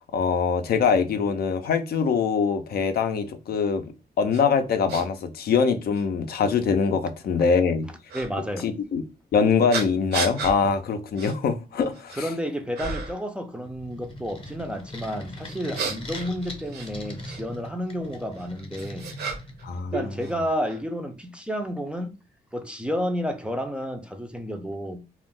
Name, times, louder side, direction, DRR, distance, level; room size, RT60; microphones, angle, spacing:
voice 1, 0.1-7.9 8.6-9.0 9.3-12.3 19.6-19.9, left 5 dB, 65° left, 0.4 m, -23 dB
sound 1, 4.3-4.4 4.9-5.0 5.9-6.0 8.1-8.3 9.7-10.6 11.2-11.3 11.8-12.3 12.7-13.2 15.4-17.4 18.4-19.6 19.9-20.8, right 4 dB, 75° right, 0.7 m, -33 dB
voice 2, 8.1-8.7 12.1-19.1 19.9-22.2 22.5-25.0, equal, 5° right, 0.4 m, -31 dB
sound 2, 13.6-19.9, left 1 dB, 30° left, 0.7 m, -40 dB
2.3 x 2.0 x 3.5 m
cardioid pair, 105°, 17 cm